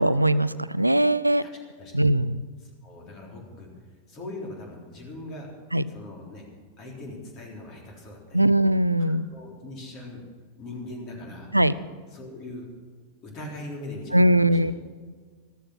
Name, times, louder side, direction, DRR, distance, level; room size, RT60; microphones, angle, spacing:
voice 1, 0.0-1.4 1.9-2.5 5.7-5.8 8.3-9.3 11.5-11.7 14.1-14.7, right 1 dB, 85° right, 17 dB, 0.4 m, -20 dB
voice 2, 2.6-3.7 4.1-5.5 5.9-6.4 6.8-8.5 9.3-10.2 10.6-11.5 12.1-12.7 13.2-14.7, left 2 dB, 35° left, 0 dB, 3.7 m, -40 dB
14.5 x 13.0 x 6.0 m, 1.5 s
figure-of-eight pair, 90°, 0 cm